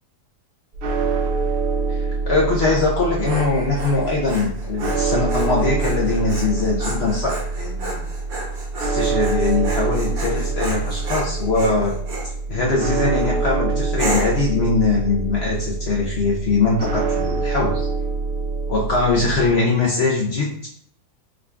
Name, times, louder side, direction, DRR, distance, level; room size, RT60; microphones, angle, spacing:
sound 1, 0.7-19.5, right 4 dB, 80° right, 0.6 m, -25 dB
voice 1, 1.9-8.0 8.8-11.9 12.5-17.9 18.7-20.7, left 3 dB, 65° left, -3 dB, 0.6 m, -21 dB
Dog, 2.9-12.3 12.9-13.3 14.0-14.5, right 2 dB, 65° right, 1.4 m, -32 dB
3.7 x 2.3 x 3.3 m, 0.62 s
omnidirectional pair, 1.7 m